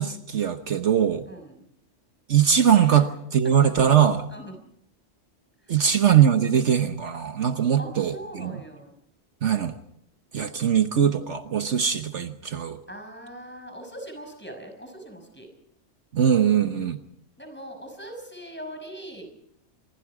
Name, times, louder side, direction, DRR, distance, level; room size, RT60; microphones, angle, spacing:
voice 1, 0.0-1.3 2.3-3.1 3.3-4.3 5.7-8.5 9.4-9.8 10.3-12.8 16.1-17.0, right 8 dB, 70° right, 8 dB, 1.4 m, -21 dB
voice 2, 1.3-1.7 2.9-3.0 3.4-3.5 4.3-4.5 5.7-5.8 7.8-8.9 12.9-15.5 17.4-19.3, right 1 dB, 10° left, 4 dB, 6.0 m, -40 dB
26.5 x 22.5 x 4.9 m, 0.70 s
omnidirectional pair, 1.3 m